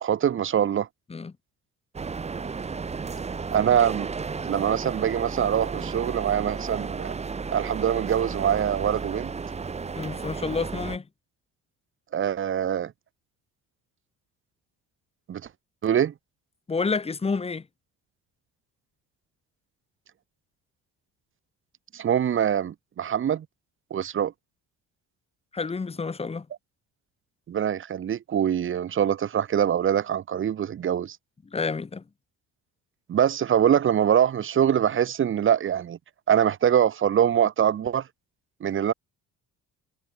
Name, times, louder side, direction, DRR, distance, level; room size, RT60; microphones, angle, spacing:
voice 1, 0.0-0.9 3.5-4.1 4.5-7.1 7.5-9.3 12.1-12.9 15.3-15.4 15.8-16.1 21.9-23.5 23.9-24.3 27.5-31.2 33.1-36.0 36.3-38.1 38.6-38.9, right 9 dB, 35° right, 2.2 m, -23 dB
sound 1, 1.9-11.0, right 5 dB, 20° right, 2.2 m, -33 dB
voice 2, 10.0-11.1 16.7-17.7 25.5-26.5 31.5-32.0, left 4 dB, 15° left, 4.5 m, -29 dB
cardioid pair, 175°, 34 cm